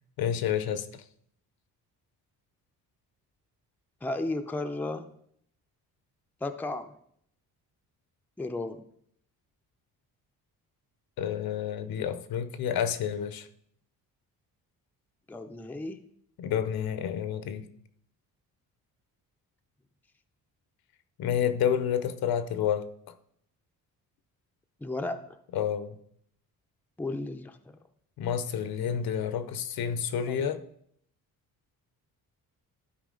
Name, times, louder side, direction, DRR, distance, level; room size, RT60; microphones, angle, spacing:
voice 1, 0.2-1.0 11.2-13.5 16.4-17.7 21.2-23.1 25.5-26.0 28.2-30.6, left 8 dB, 75° left, 12 dB, 0.8 m, -29 dB
voice 2, 4.0-5.1 6.4-6.9 8.4-8.8 15.3-16.0 24.8-25.4 27.0-27.8 30.3-30.4, left 2 dB, 5° left, 7 dB, 0.5 m, -34 dB
12.0 x 4.7 x 3.8 m, 0.68 s
cardioid pair, 110°, 37 cm